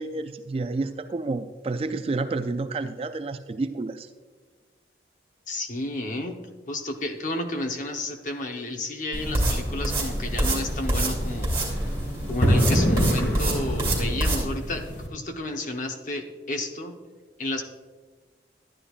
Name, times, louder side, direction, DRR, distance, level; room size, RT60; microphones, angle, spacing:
voice 1, 0.0-4.1, right 3 dB, 30° right, 9 dB, 0.3 m, -30 dB
voice 2, 5.5-6.4 6.7-11.5 12.3-14.8 15.1-17.0 17.4-17.6, left 2 dB, 45° left, 4 dB, 0.9 m, -31 dB
sound 1, 9.1-14.4, right 1 dB, 15° right, 2.5 m, -26 dB
sound 2, 10.1-15.1, equal, 85° left, 1.8 m, -27 dB
12.0 x 9.8 x 2.4 m, 1.4 s
head